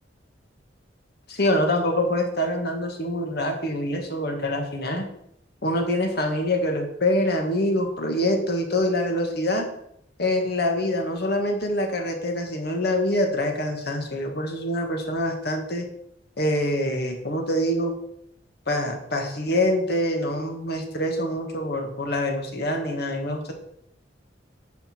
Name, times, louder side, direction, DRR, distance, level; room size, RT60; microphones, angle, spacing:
voice 1, 1.3-5.1 5.6-9.7 10.2-15.9 16.4-17.9 18.7-23.5, left 1 dB, 60° left, 3 dB, 1.8 m, -25 dB
11.0 x 6.5 x 4.5 m, 0.73 s
head